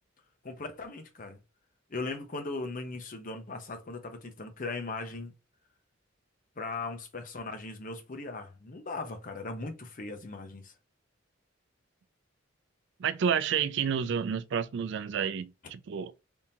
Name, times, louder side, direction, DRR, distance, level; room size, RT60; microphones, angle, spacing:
voice 1, 0.4-1.4 1.9-5.3 6.6-10.7, left 3 dB, 40° left, 0.7 m, -38 dB
voice 2, 13.0-16.1, right 7 dB, 60° right, 0.3 m, -30 dB
3.5 x 2.8 x 2.8 m
head